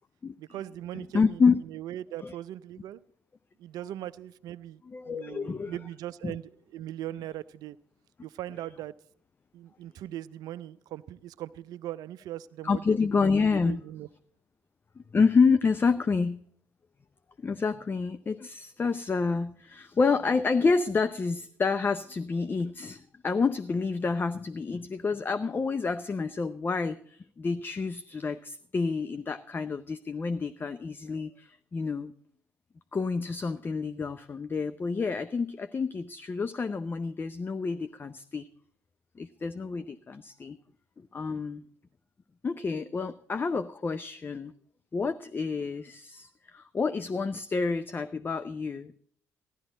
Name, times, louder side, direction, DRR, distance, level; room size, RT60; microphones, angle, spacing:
voice 1, 0.4-3.0 3.6-7.8 8.2-8.9 9.5-13.2 13.6-14.1, right 13 dB, 55° right, 17 dB, 0.5 m, -40 dB
voice 2, 0.9-1.6 2.2-2.3 4.9-5.8 6.2-6.3 12.6-13.8 15.0-16.4 17.4-32.1 32.9-38.5 39.2-40.6 41.0-41.6 42.4-44.5 44.9-49.0, left 4 dB, 25° left, 12 dB, 0.6 m, -28 dB
15.0 x 12.0 x 3.9 m, 0.62 s
figure-of-eight pair, 50°, 8 cm